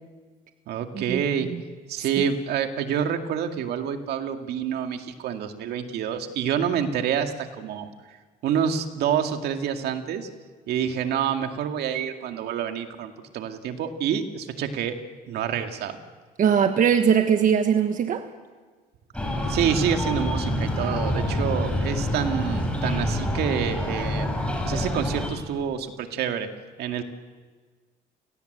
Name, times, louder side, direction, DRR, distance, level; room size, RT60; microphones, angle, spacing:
voice 1, 0.7-1.5 1.9-7.9 8.4-10.3 10.7-15.0 15.3-16.0 19.5-24.3 24.6-26.5 26.8-27.0, right 8 dB, 75° right, 6 dB, 2.1 m, -27 dB
voice 2, 16.4-18.3, right 7 dB, 50° right, 7 dB, 1.4 m, -20 dB
Breathing, 19.1-25.3, left 1 dB, 5° left, 5.8 m, -27 dB
29.5 x 18.0 x 8.1 m, 1.5 s
cardioid pair, 110°, 17 cm